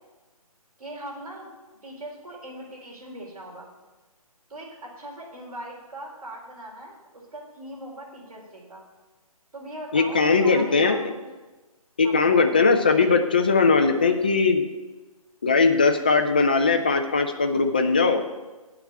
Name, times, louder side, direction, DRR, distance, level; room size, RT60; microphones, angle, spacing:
voice 1, 0.8-1.5 1.8-3.7 4.5-8.9 9.5-11.3 12.0-12.5, right 1 dB, 75° right, -2 dB, 4.0 m, -40 dB
voice 2, 9.9-11.0 12.0-14.7 15.4-18.2, left 4 dB, 15° left, 6 dB, 0.3 m, -20 dB
8.6 x 5.8 x 8.0 m, 1.2 s
hypercardioid pair, 160°, 19 cm